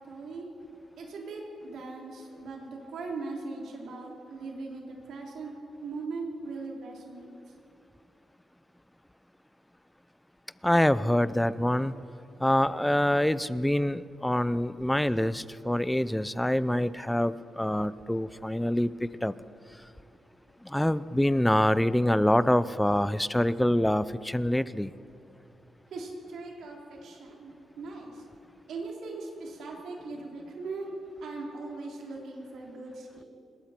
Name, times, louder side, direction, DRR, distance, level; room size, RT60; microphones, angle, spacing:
voice 1, 0.1-0.5 1.0-5.5 5.8-7.3 25.9-28.3 28.7-33.2, right 3 dB, 75° right, -1 dB, 3.6 m, -39 dB
voice 2, 10.6-11.9 12.4-19.3 20.6-24.9, left 1 dB, 5° left, 16 dB, 0.4 m, -25 dB
27.5 x 21.5 x 4.4 m, 2.7 s
wide cardioid pair, 165°, 0 cm